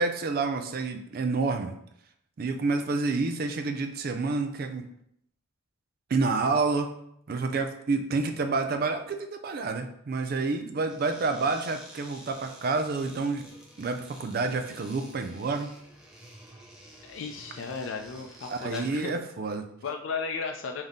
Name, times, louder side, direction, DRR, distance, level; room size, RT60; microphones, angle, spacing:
voice 1, 0.0-1.8 2.4-4.9 6.1-7.0 7.3-13.5 13.8-15.8 18.5-19.7, right 3 dB, 50° right, 7 dB, 0.4 m, -29 dB
sound 1, 10.9-19.1, right 1 dB, 5° right, 0.6 m, -50 dB
voice 2, 17.0-19.2 19.8-20.8, left 5 dB, 80° left, 3 dB, 0.4 m, -35 dB
3.5 x 2.7 x 3.6 m, 0.72 s
head